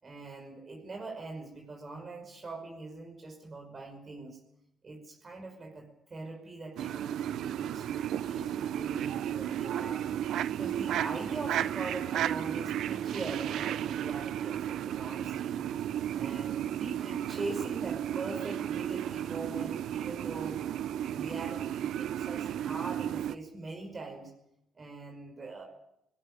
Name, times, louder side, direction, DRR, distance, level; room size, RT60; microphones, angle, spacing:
voice 1, 0.0-4.4 4.8-15.5 15.8-15.9 16.1-20.6 21.1-24.3 24.7-25.6, right 3 dB, 35° right, 2 dB, 5.7 m, -42 dB
sound 1, 6.8-23.4, right 10 dB, 80° right, 0.8 m, -33 dB
19.5 x 18.0 x 9.9 m, 0.81 s
cardioid pair, 90°, 0 cm